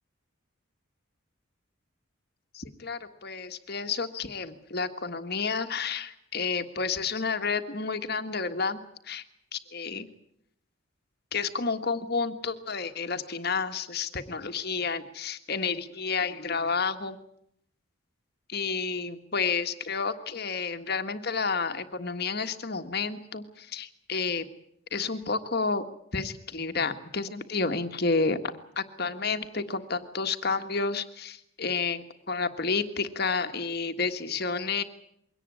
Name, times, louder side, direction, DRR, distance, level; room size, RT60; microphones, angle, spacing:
voice 1, 2.5-9.2 9.5-10.1 11.3-17.2 18.5-24.5 24.9-25.8 26.1-34.8, left 4 dB, 50° left, 8 dB, 1.6 m, -30 dB
22.5 x 18.0 x 9.8 m, 0.74 s
head